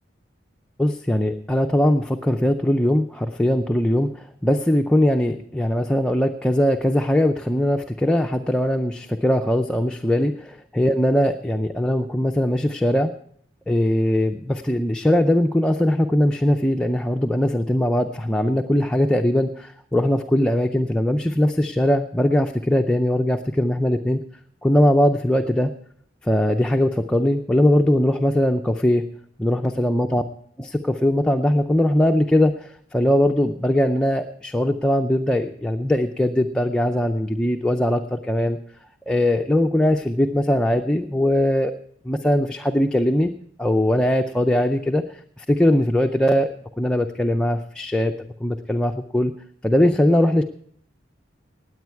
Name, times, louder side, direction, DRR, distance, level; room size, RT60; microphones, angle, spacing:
voice 1, 0.8-13.1 13.7-24.2 24.6-25.7 26.2-29.0 29.4-30.2 30.6-38.6 39.1-41.7 42.0-43.3 43.6-45.0 45.4-46.5 46.8-49.3 49.6-50.4, left 1 dB, 5° left, 4 dB, 0.4 m, -20 dB
19.0 x 8.4 x 4.6 m, 0.65 s
head